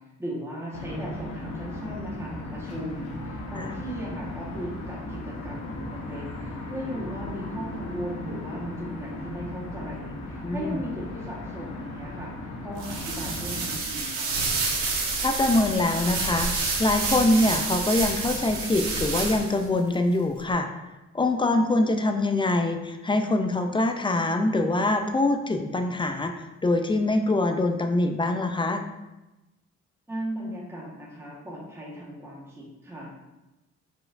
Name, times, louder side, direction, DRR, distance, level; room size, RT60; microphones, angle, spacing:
voice 1, 0.2-12.3 12.6-14.3 30.1-33.1, right 1 dB, 10° right, -5 dB, 1.3 m, -37 dB
sound 1, 0.7-13.8, left 1 dB, 60° left, 1.1 m, -37 dB
voice 2, 10.4-10.8 15.2-16.5 16.8-20.7 21.1-28.8, left 2 dB, 15° left, 6 dB, 0.4 m, -24 dB
sound 2, 12.8-19.6, right 3 dB, 90° right, 1.1 m, -29 dB
4.4 x 4.3 x 2.5 m, 1.0 s
cardioid pair, 90°, 30 cm